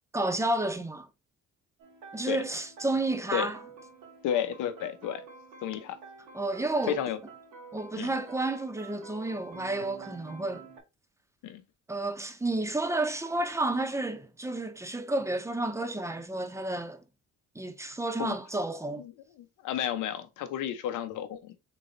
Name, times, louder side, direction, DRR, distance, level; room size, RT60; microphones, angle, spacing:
voice 1, 0.1-1.1 2.1-3.6 6.3-7.0 7.7-10.7 11.9-17.0 17.5-19.0, right 2 dB, 10° right, 0.7 m, -31 dB
sound 1, 1.8-10.8, right 4 dB, 80° right, 1.6 m, -49 dB
voice 2, 4.2-5.2 5.6-6.0 6.9-7.2 7.9-8.1 11.4-11.6 18.2-18.4 19.0-19.1 19.4-21.5, left 9 dB, 90° left, 0.8 m, -32 dB
3.7 x 3.1 x 3.8 m
cardioid pair, 90°, 30 cm